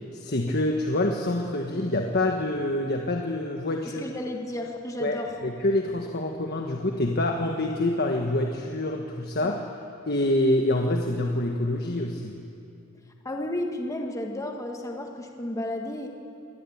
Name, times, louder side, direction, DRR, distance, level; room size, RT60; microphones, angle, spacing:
voice 1, 0.1-4.1 5.0-9.6 10.1-12.4, left 1 dB, 50° left, 2 dB, 1.4 m, -26 dB
voice 2, 3.8-5.3 9.4-9.6 13.2-16.1, left 1 dB, 15° left, 2 dB, 1.6 m, -33 dB
24.0 x 20.0 x 8.7 m, 2.8 s
head